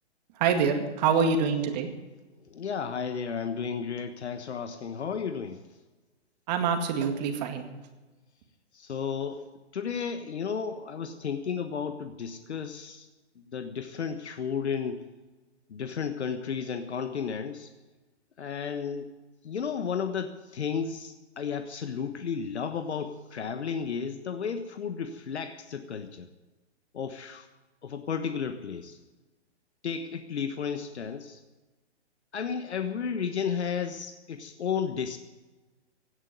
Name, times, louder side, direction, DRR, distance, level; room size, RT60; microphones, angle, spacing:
voice 1, 0.4-1.9 6.5-7.6, right 6 dB, 40° right, 6 dB, 2.1 m, -25 dB
voice 2, 2.5-5.6 8.7-9.4 9.7-13.1 13.4-15.0 15.7-17.7 18.4-19.1 19.4-26.3 26.9-27.5 27.8-29.0 29.8-31.4 32.3-35.2, left 6 dB, 70° left, 9 dB, 1.3 m, -33 dB
17.0 x 9.4 x 9.2 m, 1.2 s
hypercardioid pair, 130°, 34 cm